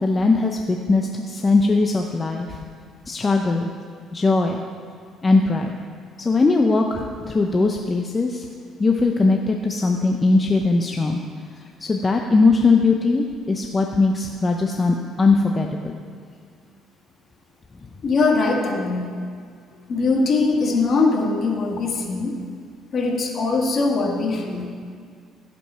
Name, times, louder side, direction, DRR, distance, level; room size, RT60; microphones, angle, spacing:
voice 1, 0.0-2.6 3.1-3.7 4.1-4.6 5.2-5.7 6.2-8.4 8.8-11.2 11.8-16.0, left 3 dB, 25° left, 2 dB, 0.7 m, -20 dB
voice 2, 18.0-19.1 19.9-22.3 22.9-24.7, left 3 dB, 50° left, 1 dB, 1.8 m, -21 dB
16.0 x 5.3 x 5.6 m, 2.1 s
cardioid pair, 85°, 0 cm